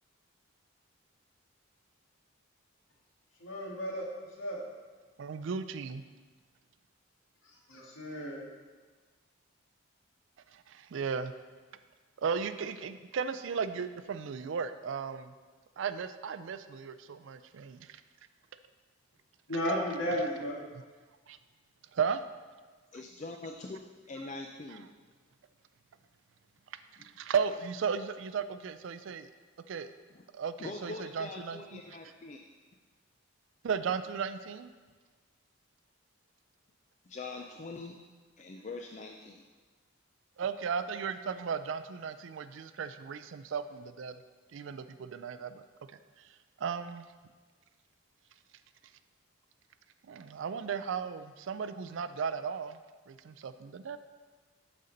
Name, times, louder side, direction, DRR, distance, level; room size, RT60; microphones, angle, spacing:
voice 1, 3.4-4.1 4.4-4.6 7.7-8.4 19.5-20.6, equal, 70° left, -3 dB, 1.7 m, -33 dB
voice 2, 5.2-6.0 10.5-11.3 12.2-15.3 15.8-18.0 20.1-20.2 21.3-21.4 21.9-22.2 27.0-29.3 29.7-29.9 30.3-31.8 33.6-34.7 40.4-44.1 44.5-45.6 46.6-47.0 50.1-52.8 53.1-54.0, right 6 dB, 65° right, 11 dB, 0.3 m, -35 dB
voice 3, 22.9-23.8 24.1-24.9 27.0-27.1 30.1-30.2 30.6-32.4 37.1-38.0 38.4-39.4, left 3 dB, 35° left, 1 dB, 0.4 m, -43 dB
11.5 x 4.2 x 3.9 m, 1.4 s
head